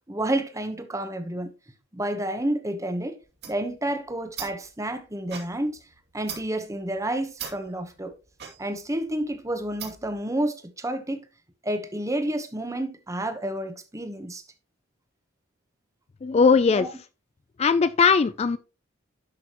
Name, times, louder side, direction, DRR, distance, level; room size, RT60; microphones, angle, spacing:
voice 1, 0.1-1.5 1.9-3.2 3.5-5.8 6.1-8.1 8.6-11.2 11.6-14.4 16.7-16.9, right 1 dB, 15° right, 1.1 m, -30 dB
sound 1, 3.2-10.2, right 7 dB, 55° right, 2.6 m, -42 dB
voice 2, 16.2-16.9 17.6-18.6, left 5 dB, 30° left, 0.3 m, -19 dB
11.0 x 6.3 x 3.0 m
head